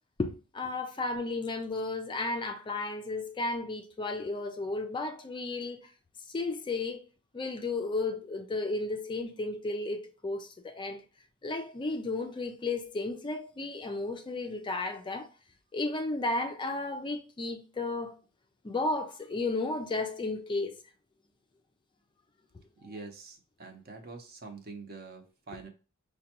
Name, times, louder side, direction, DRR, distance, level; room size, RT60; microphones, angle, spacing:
voice 1, 0.2-5.8 6.3-7.0 7.3-11.0 11.4-15.3 15.7-18.2 18.6-20.7, left 2 dB, 20° left, 0.3 m, -33 dB
voice 2, 22.8-25.7, right 4 dB, 45° right, 0.7 m, -45 dB
5.1 x 2.2 x 2.8 m
head